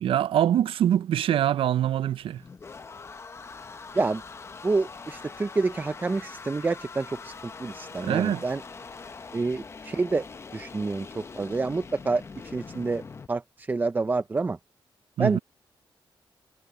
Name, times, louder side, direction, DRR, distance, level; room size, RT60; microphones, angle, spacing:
voice 1, 0.0-2.4 8.0-8.4 15.2-15.4, right 10 dB, 80° right, 0.4 m, -24 dB
sound 1, 2.0-13.3, left 4 dB, 30° left, 0.7 m, -43 dB
voice 2, 4.6-8.6 9.3-10.3 10.5-13.0 13.3-14.6 15.2-15.4, right 3 dB, 20° right, 0.4 m, -28 dB
wide cardioid pair, 155°, 9 cm